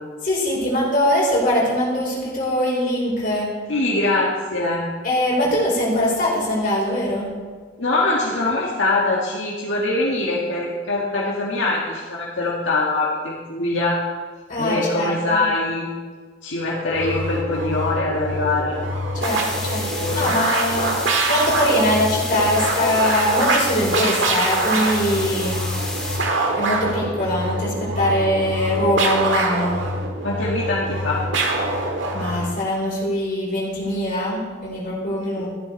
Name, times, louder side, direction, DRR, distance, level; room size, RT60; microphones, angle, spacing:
voice 1, 0.2-3.5 5.0-7.3 14.5-15.4 19.1-20.9 21.3-25.6 26.6-29.8 32.1-35.5, left 1 dB, 45° left, -5 dB, 4.6 m, -22 dB
voice 2, 3.7-4.8 7.8-14.0 14.6-15.9 16.4-18.8 19.9-20.3 30.2-31.2, left 2 dB, 75° left, -5 dB, 1.9 m, -23 dB
sound 1, 16.9-32.6, right 2 dB, 75° right, 1.7 m, -24 dB
sound 2, 19.2-26.2, left 1 dB, 5° left, 2.3 m, -31 dB
14.5 x 12.0 x 4.1 m, 1.5 s
head